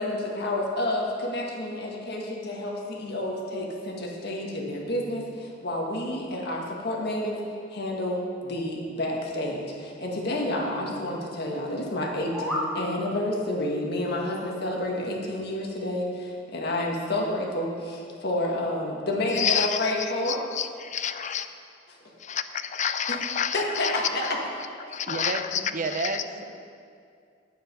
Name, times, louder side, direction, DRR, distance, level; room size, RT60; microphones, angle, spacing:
voice 1, 0.0-7.4 7.7-20.4 21.9-22.1 23.1-23.2 23.5-24.4 25.5-25.6, left 1 dB, 60° left, -1 dB, 1.7 m, -29 dB
sound 1, 12.0-12.7, left 1 dB, ahead, 1.8 m, -31 dB
voice 2, 19.4-19.8 20.3-21.5 22.2-23.9 24.2-24.3 24.9-25.6 25.9-26.2, left 8 dB, 40° left, 10 dB, 0.5 m, -29 dB
voice 3, 25.1-26.4, right 3 dB, 45° right, 7 dB, 0.6 m, -31 dB
10.0 x 9.6 x 5.4 m, 2.3 s
head